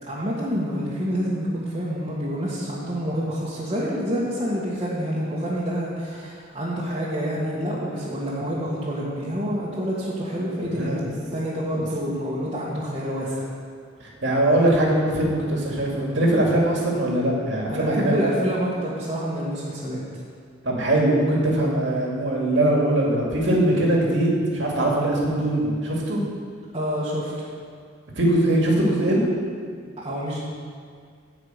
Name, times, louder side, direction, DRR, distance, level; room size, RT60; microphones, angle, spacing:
voice 1, 0.0-11.0 11.3-13.4 17.7-20.2 26.7-27.5 30.0-30.4, equal, 30° right, -8 dB, 1.5 m, -27 dB
voice 2, 14.2-18.2 20.6-26.2 28.2-29.2, right 1 dB, 70° right, -2 dB, 2.1 m, -21 dB
11.0 x 4.9 x 8.1 m, 2.1 s
head